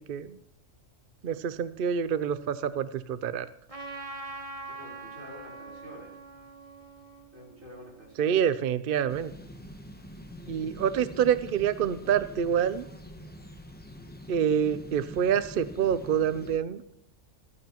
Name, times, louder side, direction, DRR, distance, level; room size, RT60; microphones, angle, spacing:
voice 1, 1.2-3.5 8.2-9.3 10.5-12.9 14.3-16.8, right 8 dB, 55° right, 13 dB, 0.6 m, -27 dB
Trumpet, 3.7-8.4, right 3 dB, 25° right, 1.2 m, -43 dB
voice 2, 4.7-6.2 7.3-8.4, equal, 75° right, -3 dB, 4.6 m, -48 dB
sound 1, 9.1-16.6, equal, 10° left, 0.7 m, -45 dB
15.0 x 13.5 x 3.0 m, 0.70 s
omnidirectional pair, 1.4 m